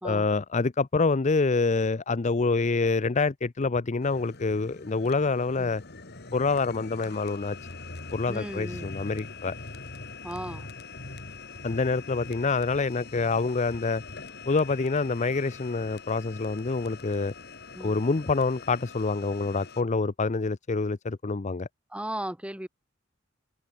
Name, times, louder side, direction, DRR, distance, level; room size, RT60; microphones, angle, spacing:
voice 1, 0.0-5.8 6.3-7.7 8.1-9.5 11.6-14.0 14.5-17.3 17.8-21.7, left 4 dB, 35° left, 0.6 m, -26 dB
sound 1, 4.0-19.8, left 4 dB, 55° left, 2.9 m, -43 dB
voice 2, 8.3-8.9 10.2-10.7 17.7-18.0 21.9-22.7, right 1 dB, 5° right, 2.4 m, -36 dB
head